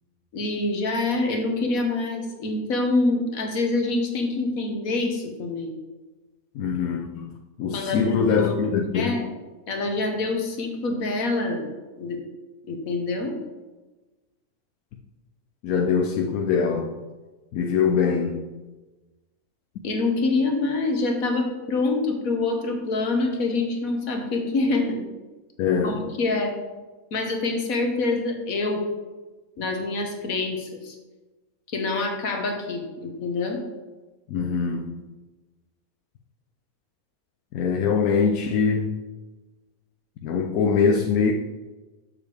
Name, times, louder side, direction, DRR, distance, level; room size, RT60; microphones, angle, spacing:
voice 1, 0.3-5.7 7.7-9.3 9.7-11.7 12.0-12.2 12.7-13.3 19.8-25.0 25.8-26.5 27.1-28.8 29.6-31.0 31.7-33.6, left 3 dB, 75° left, 3 dB, 1.6 m, -26 dB
voice 2, 6.5-9.2 15.6-17.0 17.5-18.5 25.6-26.0 34.3-35.0 37.5-38.9 40.2-41.3, left 6 dB, 90° left, 2 dB, 1.1 m, -23 dB
7.1 x 6.6 x 3.4 m, 1.2 s
omnidirectional pair, 1.5 m